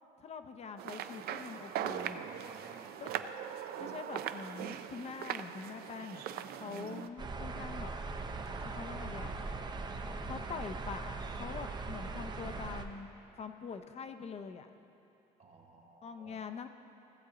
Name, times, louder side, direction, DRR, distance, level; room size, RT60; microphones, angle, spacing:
voice 1, 0.2-2.3 3.0-3.1 3.8-8.0 8.6-9.3 10.2-13.1 13.4-14.7 16.0-16.7, left 5 dB, 40° left, 8 dB, 0.6 m, -44 dB
sound 1, 0.8-7.1, right 9 dB, 65° right, 0.4 m, -40 dB
voice 2, 1.8-3.3 12.4-12.6 15.4-16.5, right 4 dB, 40° right, 1 dB, 1.6 m, -57 dB
sound 2, 7.2-12.8, right 3 dB, 25° right, 0.6 m, -40 dB
15.5 x 8.1 x 3.9 m, 2.8 s
cardioid pair, 110°, 17 cm